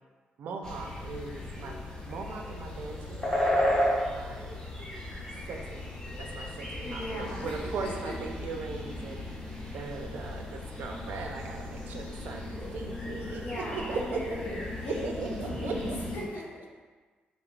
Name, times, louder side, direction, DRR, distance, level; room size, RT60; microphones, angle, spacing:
voice 1, 0.4-1.8 2.0-4.6 5.5-13.4 13.7-14.2 15.0-16.0, right 4 dB, 65° right, 2 dB, 0.4 m, -39 dB
sound 1, 0.6-16.2, left 1 dB, 20° left, 0.6 m, -34 dB
voice 2, 6.8-8.3 13.2-16.6, left 1 dB, 70° left, -4 dB, 0.7 m, -39 dB
3.5 x 2.3 x 3.9 m, 1.4 s
wide cardioid pair, 165°, 3 cm